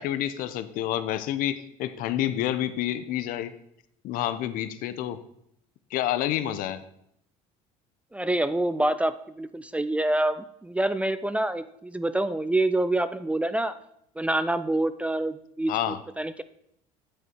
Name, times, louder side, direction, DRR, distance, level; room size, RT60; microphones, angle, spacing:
voice 1, 0.0-3.5 4.0-5.2 5.9-6.8 15.7-16.0, left 12 dB, 65° left, 12 dB, 0.8 m, -28 dB
voice 2, 8.1-13.7 14.2-16.4, right 1 dB, 10° right, 13 dB, 0.4 m, -26 dB
8.9 x 8.0 x 4.6 m, 0.73 s
supercardioid pair, 100°, 16 cm